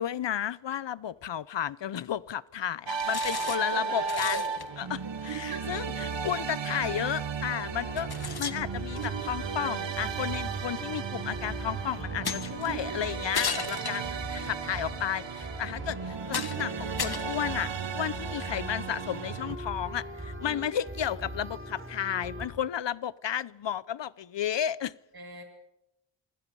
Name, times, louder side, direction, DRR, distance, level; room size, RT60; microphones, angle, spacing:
voice 1, 0.0-4.4 4.8-8.1 8.4-24.9, left 9 dB, 70° left, 19 dB, 0.8 m, -33 dB
sound 1, 2.9-19.6, right 6 dB, 70° right, 1.4 m, -35 dB
sound 2, 3.0-3.8 4.1-4.6 6.1-6.2 7.2-7.3 8.0-9.3 10.4-10.5 12.2-12.7 13.3-14.5 15.2-15.3 15.8-15.9 16.3-16.7 17.0-17.9, left 6 dB, 55° left, 1.8 m, -35 dB
voice 2, 3.7-4.4 5.5-5.6 13.7-14.3 20.4-20.7 25.1-25.4, right 3 dB, 55° right, 4 dB, 7.1 m, -39 dB
sound 3, 7.7-22.5, equal, 25° right, 5.4 m, -41 dB
29.0 x 25.0 x 5.5 m, 0.86 s
wide cardioid pair, 115°, 45 cm